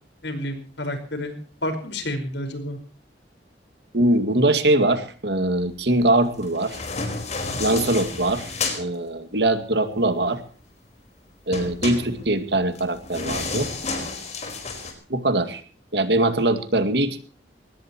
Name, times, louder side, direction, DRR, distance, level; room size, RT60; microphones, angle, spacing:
voice 1, 0.2-2.8, left 1 dB, 80° left, 7 dB, 5.0 m, -30 dB
voice 2, 3.9-6.8 7.6-8.5 8.7-10.4 11.5-13.7 15.1-15.6 15.9-17.2, right 1 dB, 65° right, 9 dB, 2.3 m, -22 dB
sound 1, 6.4-8.8 11.5-14.9, left 3 dB, 40° left, 4.6 m, -31 dB
22.5 x 19.0 x 3.0 m, 0.41 s
head